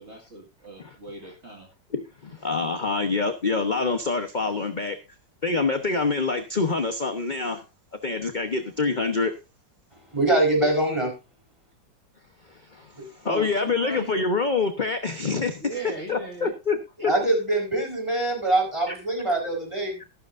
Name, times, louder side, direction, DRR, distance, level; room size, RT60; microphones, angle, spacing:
voice 1, 0.0-1.7 13.2-14.2 15.6-16.5 17.0-17.1, right 1 dB, 40° right, 1 dB, 2.3 m, -37 dB
voice 2, 1.9-5.0 5.4-7.6 8.0-9.3 12.5-16.8 17.0-17.1 18.9-19.0, left 4 dB, 35° left, 7 dB, 0.9 m, -26 dB
voice 3, 10.1-11.2 17.0-20.0, right 2 dB, 15° right, 1 dB, 4.7 m, -23 dB
13.5 x 12.5 x 2.6 m, 0.26 s
omnidirectional pair, 1.9 m